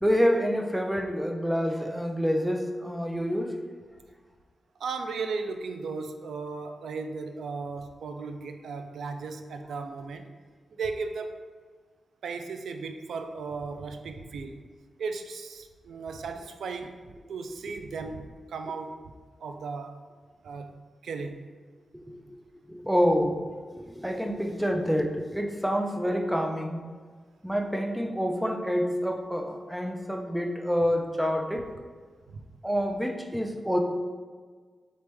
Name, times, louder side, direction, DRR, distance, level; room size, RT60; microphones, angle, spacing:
voice 1, 0.0-3.5 21.9-22.2 22.7-23.4 23.7-26.9 27.4-31.6 32.6-33.8, equal, 5° right, 3 dB, 0.5 m, -27 dB
voice 2, 4.8-10.3 10.7-11.4 12.2-14.6 15.0-17.0 17.3-19.0 19.4-20.0 20.4-20.8 21.0-21.5 32.3-32.4, right 4 dB, 85° right, 7 dB, 0.3 m, -36 dB
4.1 x 3.2 x 3.4 m, 1.5 s
cardioid pair, 80°, 0 cm